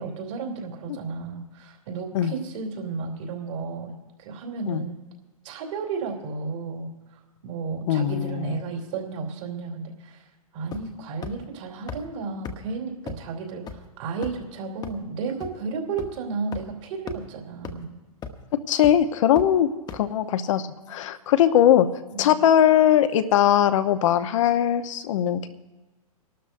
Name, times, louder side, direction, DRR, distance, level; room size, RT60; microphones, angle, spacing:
voice 1, 0.0-5.0 5.4-6.9 7.4-10.2 10.5-18.0 22.2-22.3, right 4 dB, 55° right, 1 dB, 3.1 m, -33 dB
voice 2, 7.9-8.6 18.7-21.9 22.2-25.5, left 10 dB, 55° left, 10 dB, 1.0 m, -20 dB
sound 1, 10.7-11.0 11.2-11.3 11.9-12.0 12.4-12.5 13.1-13.2 13.7-13.8 14.2-14.4 14.8-14.9 15.4-15.5 16.0-16.1 16.5-16.6 17.1-17.2 17.6-17.7 18.2-18.4 18.8-18.9 19.4-19.5 19.9-20.0, left 6 dB, 20° left, 1.0 m, -34 dB
26.0 x 12.5 x 2.6 m, 1.2 s
hypercardioid pair, 110°, 19 cm